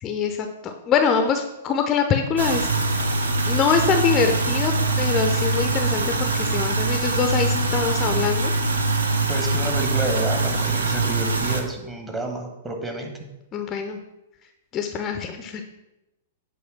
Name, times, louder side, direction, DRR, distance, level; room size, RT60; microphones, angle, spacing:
voice 1, 0.0-2.7 3.5-4.7 5.0-8.5 13.5-14.0 14.7-15.6, left 6 dB, 25° left, 6 dB, 0.5 m, -24 dB
sound 1, 2.4-11.6, right 3 dB, 70° right, 0.7 m, -23 dB
voice 2, 9.3-13.3, right 2 dB, 15° right, 3 dB, 1.1 m, -30 dB
7.7 x 3.3 x 5.8 m, 0.94 s
figure-of-eight pair, 105°, 0 cm